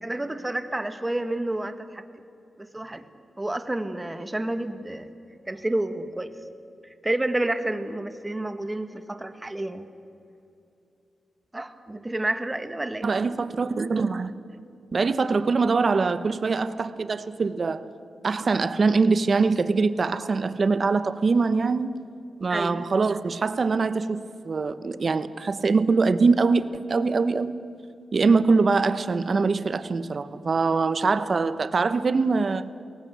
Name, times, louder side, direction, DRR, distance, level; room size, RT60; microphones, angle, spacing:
voice 1, 0.0-2.0 2.6-3.0 3.4-5.1 5.5-6.3 7.0-9.9 11.5-13.1 22.5-22.8 28.3-28.5, right 1 dB, 15° right, 10 dB, 1.6 m, -29 dB
voice 2, 13.0-14.3 14.9-17.8 18.2-21.9 22.4-27.6 28.1-32.6, right 4 dB, 50° right, 14 dB, 1.0 m, -23 dB
21.5 x 18.0 x 8.3 m, 2.7 s
cardioid pair, 80°, 0 cm